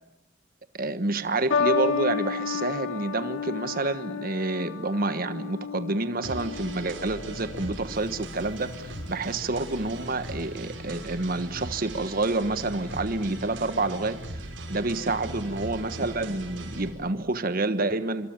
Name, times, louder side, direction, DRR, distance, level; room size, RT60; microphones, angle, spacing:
voice 1, 0.7-18.3, right 2 dB, 50° right, 1.3 m, -28 dB
sound 1, 1.5-8.0 8.9-9.3, left 5 dB, 80° left, 2.2 m, -31 dB
sound 2, 6.2-16.9, right 1 dB, 90° right, 6.3 m, -39 dB
26.5 x 25.0 x 8.9 m
head